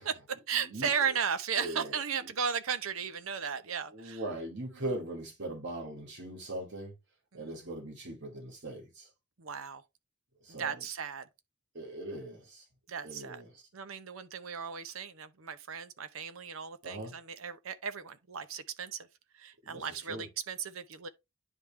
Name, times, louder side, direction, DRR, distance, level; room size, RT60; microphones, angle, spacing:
voice 1, 0.1-4.2 7.3-7.6 9.4-9.8 10.5-11.3 12.9-13.4 13.7-19.1 19.3-21.1, right 7 dB, 80° right, 0.7 m, -35 dB
voice 2, 0.6-0.9 1.6-2.0 2.2-2.3 3.9-6.9 7.3-9.1 10.4-10.8 11.7-12.7 13.0-13.6 16.8-17.1 19.6-20.3, right 1 dB, 60° right, 2.4 m, -40 dB
10.0 x 3.6 x 3.2 m
head